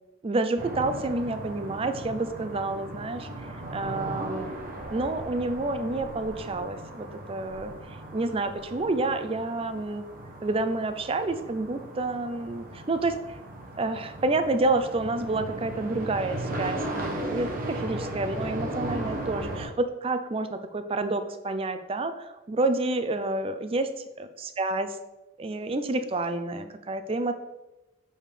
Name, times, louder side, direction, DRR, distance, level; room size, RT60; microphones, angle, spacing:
voice 1, 0.2-3.3 3.7-4.5 4.9-7.7 8.1-10.1 10.4-13.2 13.8-24.9 25.4-27.3, right 2 dB, 30° right, 9 dB, 0.4 m, -29 dB
Under a highway, 0.6-19.7, right 1 dB, 45° right, 0.9 m, -37 dB
6.6 x 5.5 x 3.3 m, 1.0 s
head